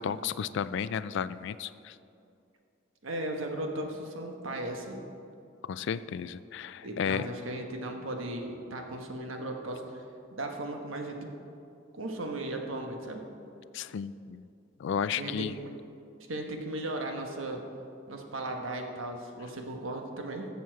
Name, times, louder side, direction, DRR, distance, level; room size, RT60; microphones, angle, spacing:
voice 1, 0.0-2.0 5.7-7.3 13.7-14.5 14.8-15.5, left 7 dB, 65° left, 15 dB, 0.3 m, -33 dB
voice 2, 3.0-5.0 6.8-10.0 10.3-11.3 11.9-13.2 15.1-15.5 16.3-17.6 18.1-20.5, right 1 dB, 85° right, 3 dB, 1.2 m, -36 dB
14.0 x 7.1 x 4.7 m, 2.6 s
head